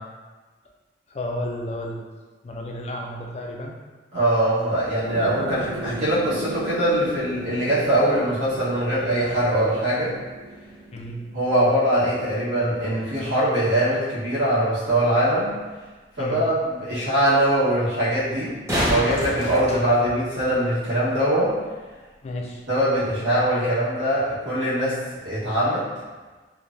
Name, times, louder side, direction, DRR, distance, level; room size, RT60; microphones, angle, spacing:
voice 1, 1.1-2.1 2.4-3.8 10.9-11.2 16.2-16.4 22.2-22.6, left 1 dB, 35° left, 0 dB, 0.3 m, -32 dB
voice 2, 4.1-10.1 11.3-15.5 16.2-18.5 18.9-21.5 22.7-25.8, right 1 dB, 85° right, -10 dB, 1.2 m, -22 dB
sound 1, 5.0-12.2, right 2 dB, 70° left, 0.9 m, -37 dB
sound 2, 18.3-20.5 23.3-23.4, equal, 15° right, 0.7 m, -27 dB
3.1 x 2.1 x 2.5 m, 1.3 s
head